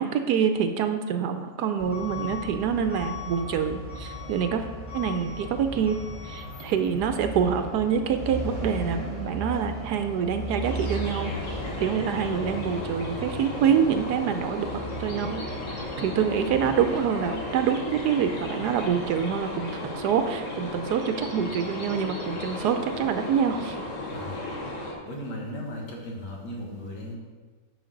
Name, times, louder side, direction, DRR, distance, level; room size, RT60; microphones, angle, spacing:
voice 1, 0.0-4.7 4.9-6.0 6.2-14.7 15.0-15.4 15.7-23.8, right 7 dB, 75° right, 7 dB, 1.1 m, -26 dB
Truck / Alarm, 1.8-19.0, equal, 30° left, 2.1 m, -37 dB
sound 1, 10.6-24.9, left 2 dB, 50° left, 1.5 m, -35 dB
voice 2, 25.1-27.2, left 1 dB, 70° left, 0 dB, 2.0 m, -36 dB
10.5 x 5.7 x 3.9 m, 1.4 s
omnidirectional pair, 1.9 m